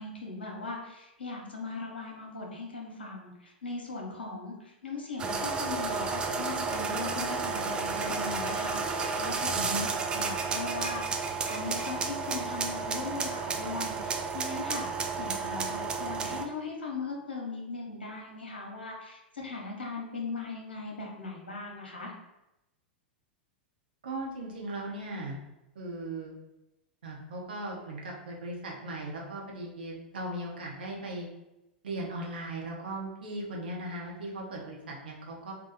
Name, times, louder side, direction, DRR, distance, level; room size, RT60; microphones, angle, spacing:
voice 1, 0.0-9.8 10.1-14.9 15.2-22.1, left 3 dB, 75° left, -1 dB, 0.8 m, -39 dB
sound 1, 5.2-16.5, right 4 dB, 15° right, 0.4 m, -32 dB
voice 2, 24.0-25.4 25.7-26.3 27.0-31.3 31.8-35.5, right 1 dB, 65° right, -2 dB, 0.9 m, -38 dB
2.8 x 2.2 x 4.0 m, 0.92 s
figure-of-eight pair, 95°, 6 cm